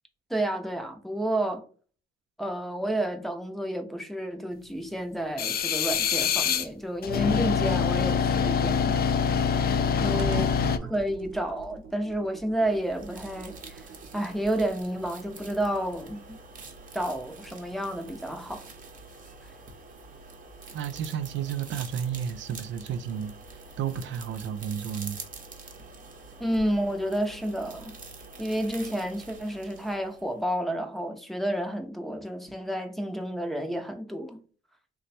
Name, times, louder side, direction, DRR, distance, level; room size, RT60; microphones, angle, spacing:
voice 1, 0.3-1.6 2.4-9.0 10.0-10.4 10.8-13.9 14.1-16.4 16.9-18.7 26.4-28.0 28.4-34.4, right 1 dB, ahead, 0.6 m, -30 dB
sound 1, 5.4-6.7 7.0-10.8, left 7 dB, 50° left, 0.4 m, -25 dB
Computer keyboard, 7.9-14.8, right 1 dB, 85° right, 0.8 m, -45 dB
voice 2, 10.1-10.9 20.7-25.2, right 8 dB, 70° right, 0.4 m, -33 dB
sound 2, 12.6-30.4, right 3 dB, 45° right, 0.8 m, -46 dB
3.1 x 2.2 x 4.1 m
cardioid pair, 90°, 20 cm